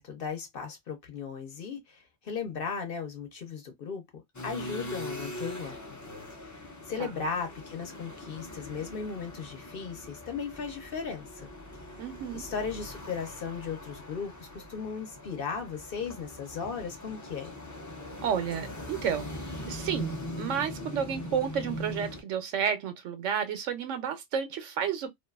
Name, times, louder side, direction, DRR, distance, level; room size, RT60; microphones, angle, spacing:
voice 1, 0.0-4.0 4.4-5.8 6.5-11.5 12.3-17.5, left 6 dB, 55° left, 0.9 m, -36 dB
sound 1, 4.3-22.2, left 1 dB, 25° left, 0.4 m, -41 dB
voice 2, 12.0-12.4 18.2-19.3 19.7-25.1, right 8 dB, 90° right, 1.0 m, -31 dB
2.6 x 2.3 x 2.2 m
omnidirectional pair, 1.2 m